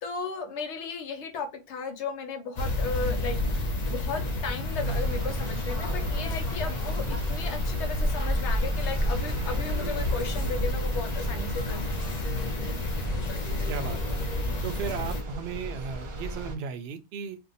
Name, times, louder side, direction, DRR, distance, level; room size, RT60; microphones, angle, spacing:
voice 1, 0.0-11.9, left 4 dB, 80° left, 1.0 m, -35 dB
sound 1, 2.6-15.2, left 1 dB, 45° left, 0.7 m, -30 dB
sound 2, 4.8-16.6, equal, 35° right, 0.6 m, -33 dB
voice 2, 13.7-14.2 14.6-17.4, right 7 dB, 70° right, 0.8 m, -36 dB
2.6 x 2.2 x 4.0 m
omnidirectional pair, 1.2 m